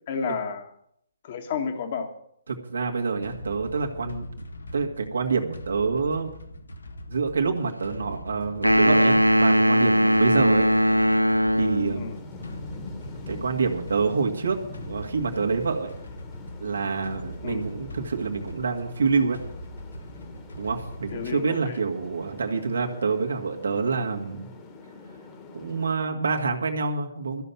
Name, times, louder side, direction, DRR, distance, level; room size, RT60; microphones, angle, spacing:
voice 1, 0.1-0.7 1.2-2.1 12.0-12.2 17.4-17.6 21.1-21.8, left 6 dB, 40° left, 5 dB, 1.8 m, -31 dB
voice 2, 2.5-4.3 4.7-6.3 7.1-10.7 11.6-12.2 13.3-14.6 14.9-15.9 16.6-19.4 20.6-24.5 25.5-27.4, right 4 dB, 65° right, 2 dB, 2.2 m, -27 dB
sound 1, 3.2-21.6, left 1 dB, 70° left, 1.8 m, -41 dB
sound 2, 8.6-12.0, equal, 90° right, 0.4 m, -19 dB
sound 3, 11.5-25.9, left 2 dB, 20° left, 1.7 m, -44 dB
14.0 x 6.9 x 9.1 m, 0.71 s
figure-of-eight pair, 130°, 0 cm